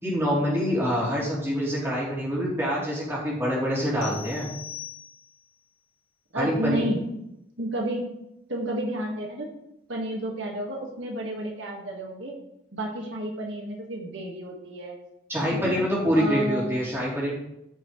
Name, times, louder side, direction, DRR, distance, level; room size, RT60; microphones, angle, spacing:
voice 1, 0.0-4.5 6.3-6.8 15.3-17.3, equal, 15° right, -6 dB, 3.2 m, -25 dB
sound 1, 4.0-5.5, left 9 dB, 80° left, 2.3 m, -41 dB
voice 2, 6.3-7.0 7.6-8.0 8.5-9.5 9.9-12.3 12.7-15.0 15.6-15.8 16.1-16.8, right 1 dB, 80° right, 0 dB, 1.7 m, -31 dB
14.5 x 6.0 x 3.2 m, 0.83 s
head